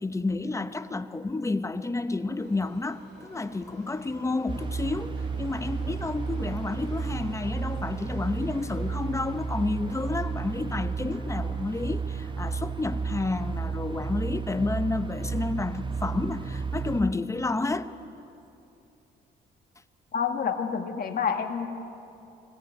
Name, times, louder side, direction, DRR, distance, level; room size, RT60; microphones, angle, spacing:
voice 1, 0.0-17.9, left 3 dB, 15° left, 0.8 m, -30 dB
Subway metro underground, 2.4-16.5 16.8-16.9 17.7-17.8 18.1-18.2 18.8-18.9, right 2 dB, 55° right, 6.9 m, -50 dB
sound 1, 4.5-17.0, right 5 dB, 25° right, 0.8 m, -33 dB
voice 2, 20.1-21.7, left 6 dB, 50° left, 1.7 m, -28 dB
20.5 x 14.5 x 9.3 m
cardioid pair, 90°, 20 cm